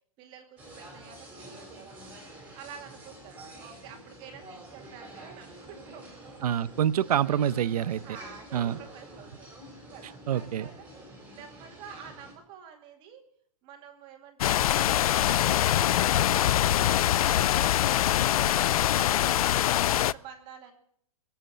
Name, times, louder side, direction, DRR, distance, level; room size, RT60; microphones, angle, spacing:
voice 1, 0.2-1.9 2.5-6.3 8.0-9.5 9.9-13.2 13.6-20.7, right 7 dB, 25° right, 4 dB, 2.5 m, -49 dB
sound 1, 0.6-12.3, right 1 dB, 10° right, 4.1 m, -47 dB
voice 2, 6.4-8.0 8.5-8.8 10.3-10.7, right 10 dB, 90° right, 17 dB, 0.8 m, -26 dB
sound 2, 14.4-20.1, left 12 dB, 75° left, 0.5 m, -24 dB
21.5 x 8.3 x 6.9 m, 0.65 s
supercardioid pair, 170°, 19 cm